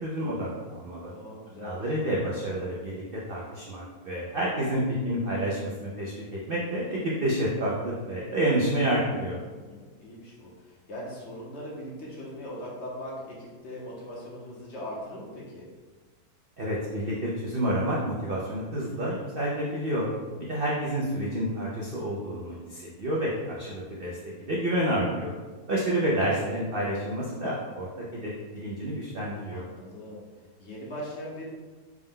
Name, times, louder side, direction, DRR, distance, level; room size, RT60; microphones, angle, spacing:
voice 1, 0.0-1.1 1.6-3.0 3.3-9.4 16.6-20.1 20.5-25.3 25.7-28.3 28.6-29.6, right 1 dB, 65° right, -5 dB, 0.5 m, -29 dB
voice 2, 1.1-2.0 9.6-15.7 20.4-20.7 29.5-30.2 30.6-31.4, equal, 55° left, -4 dB, 0.9 m, -40 dB
4.7 x 2.1 x 3.6 m, 1.3 s
omnidirectional pair, 1.6 m